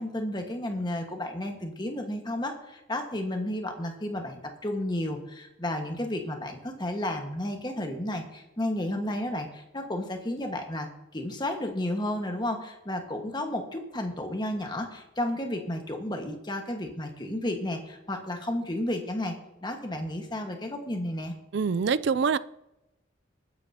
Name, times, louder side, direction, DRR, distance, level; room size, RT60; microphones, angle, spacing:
voice 1, 0.0-19.3 19.6-21.3, left 1 dB, 20° left, 1.5 m, -32 dB
voice 2, 21.5-22.4, right 5 dB, 60° right, 0.4 m, -25 dB
20.5 x 9.3 x 2.8 m
head